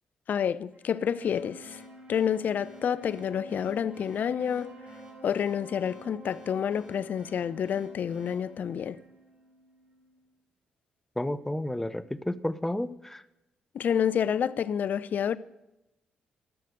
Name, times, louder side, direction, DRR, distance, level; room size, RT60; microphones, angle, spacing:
voice 1, 0.3-1.8 2.1-4.8 5.2-9.0 13.7-15.4, left 8 dB, 60° left, 0.5 m, -29 dB
Wind instrument woodwind instrument, 0.7-10.2, right 2 dB, 50° right, 4.1 m, -51 dB
sound 1, 1.2-9.5, left 1 dB, 35° right, 4.5 m, -54 dB
voice 2, 11.2-13.2, left 1 dB, 10° left, 0.7 m, -31 dB
12.5 x 6.6 x 8.1 m
hypercardioid pair, 45°, 3 cm